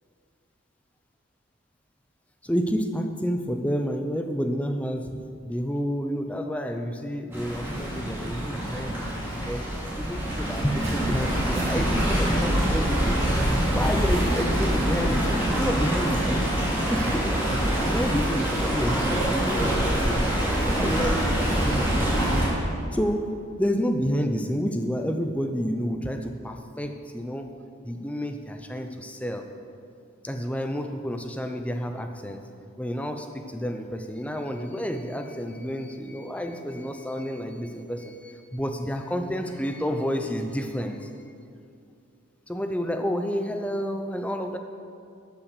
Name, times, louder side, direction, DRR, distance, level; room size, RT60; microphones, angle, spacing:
voice 1, 2.4-9.7 10.0-13.2 13.8-16.4 16.9-17.4 17.8-22.1 22.9-23.3 23.6-27.5 27.8-29.5 30.2-32.4 32.8-41.1 42.5-44.6, equal, 5° left, 5 dB, 0.5 m, -30 dB
Stream, 7.3-22.5, right 1 dB, 10° right, 2.6 m, -25 dB
sound 1, 10.8-17.6, right 1 dB, 30° right, 2.4 m, -42 dB
12.0 x 5.9 x 6.6 m, 2.5 s
head